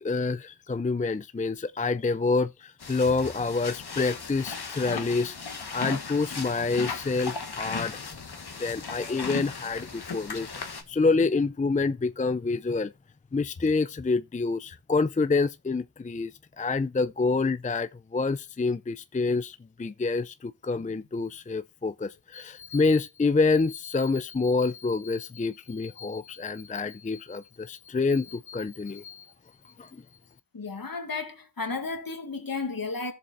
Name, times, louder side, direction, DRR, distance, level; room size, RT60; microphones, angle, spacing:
voice 1, 0.0-5.4 5.7-8.0 8.6-12.9 13.3-16.3 16.6-29.2 29.8-30.0, left 3 dB, 20° left, 0.5 m, -27 dB
sound 1, 2.8-10.8, left 4 dB, 75° left, 1.5 m, -37 dB
voice 2, 30.5-33.1, left 4 dB, 60° left, 2.0 m, -33 dB
14.5 x 7.1 x 2.6 m
cardioid pair, 40°, 39 cm